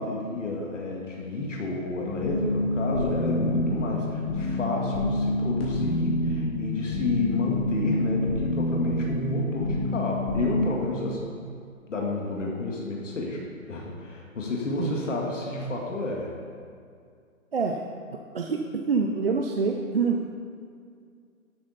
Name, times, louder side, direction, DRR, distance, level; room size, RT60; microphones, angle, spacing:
voice 1, 0.0-11.3 11.9-16.3, left 2 dB, 60° left, -1 dB, 1.9 m, -30 dB
sound 1, 2.0-10.7, left 1 dB, 40° left, 2.9 m, -28 dB
voice 2, 17.5-17.8 18.1-20.3, right 4 dB, 45° right, 2 dB, 0.6 m, -26 dB
12.0 x 8.8 x 4.1 m, 2.2 s
hypercardioid pair, 165°, 42 cm